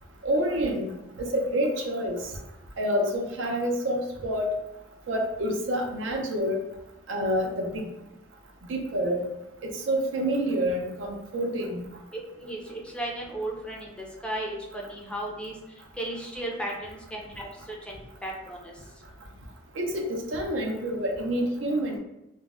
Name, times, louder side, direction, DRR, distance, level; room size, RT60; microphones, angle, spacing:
voice 1, 0.2-0.9 1.2-2.2 2.8-4.5 5.1-6.6 7.1-7.9 8.7-9.2 9.6-11.8 19.8-22.0, equal, 90° right, 2 dB, 0.5 m, -28 dB
voice 2, 12.4-15.5 16.0-18.7, right 1 dB, 5° left, -2 dB, 0.4 m, -35 dB
2.5 x 2.0 x 3.4 m, 0.91 s
head